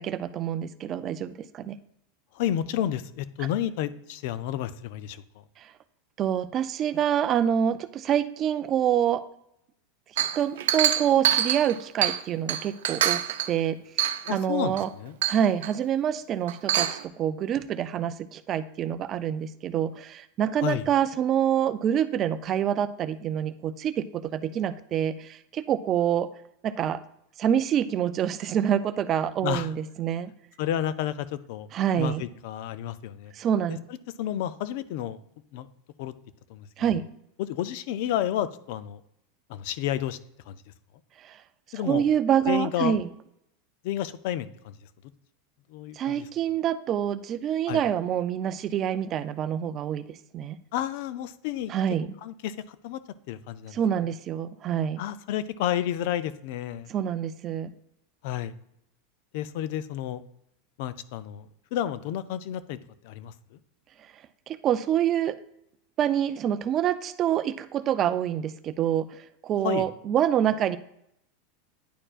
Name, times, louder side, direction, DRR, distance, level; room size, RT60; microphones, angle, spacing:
voice 1, 0.0-1.8 5.6-5.7 6.2-9.2 10.4-13.2 13.5-14.9 15.3-26.3 26.6-27.0 27.4-30.3 31.7-32.2 33.3-33.8 36.8-37.0 41.2-41.4 41.7-43.1 46.0-50.6 51.7-52.1 53.7-55.0 56.9-57.7 64.5-65.4 66.0-70.8, right 9 dB, 30° right, 13 dB, 0.3 m, -26 dB
voice 2, 2.3-5.2 14.3-15.2 20.6-20.9 29.4-29.7 30.6-31.7 32.0-33.3 34.2-35.2 35.5-35.7 36.0-36.1 36.5-36.7 37.4-39.0 39.5-40.2 40.5-40.6 41.7-42.0 42.5-43.0 43.8-44.8 45.7-46.3 47.7-47.8 50.7-51.7 52.2-53.0 53.3-53.8 54.1-54.2 55.0-56.9 58.2-58.5 59.3-60.2 60.8-62.8 63.0-63.6 69.6-69.9, left 11 dB, 55° left, 15 dB, 0.4 m, -31 dB
Chink clink, 10.2-12.2 12.5-13.5 14.0-14.3 14.8-14.9 15.2-15.7 16.5-17.0, right 11 dB, 90° right, 0.5 m, -25 dB
10.0 x 4.4 x 2.4 m, 0.76 s
supercardioid pair, 155°, 0 cm